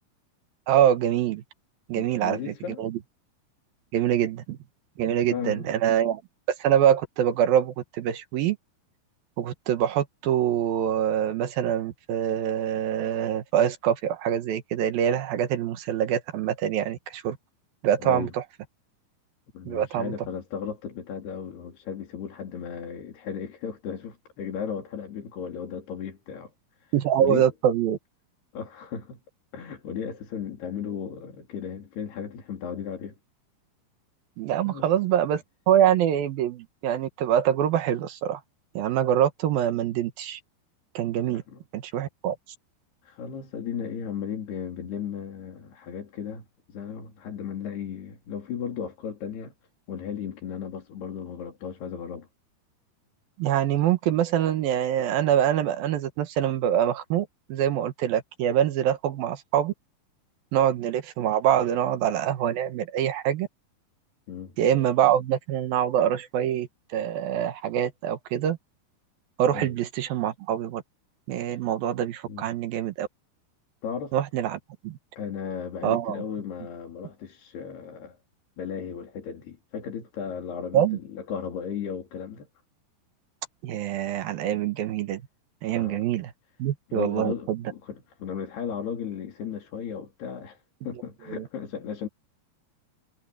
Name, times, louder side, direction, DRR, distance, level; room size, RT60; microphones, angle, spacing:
voice 1, 0.7-1.4 1.9-2.4 2.8-3.0 3.9-4.6 5.0-6.2 6.6-8.6 9.4-17.4 17.8-18.4 19.7-20.1 26.9-28.0 34.4-38.4 38.7-40.4 40.9-41.4 41.7-42.4 53.4-59.7 60.5-63.5 64.6-68.6 69.4-70.8 71.3-73.1 74.1-75.0 75.8-76.2 80.7-81.0 83.6-85.2 85.6-86.3 86.6-87.6 91.3-91.4, right 10 dB, 70° right, 2.9 m, -25 dB
voice 2, 1.9-2.8 5.0-5.7 18.0-18.3 19.5-26.5 26.8-27.5 28.5-29.2 29.5-33.2 34.6-34.9 41.3-41.6 43.0-49.5 49.9-52.3 64.3-64.5 69.5-69.7 72.3-72.5 73.8-74.2 75.2-78.2 78.6-82.5 85.7-86.1 86.9-92.1, left 7 dB, 80° left, 5.6 m, -35 dB
omnidirectional pair, 4.6 m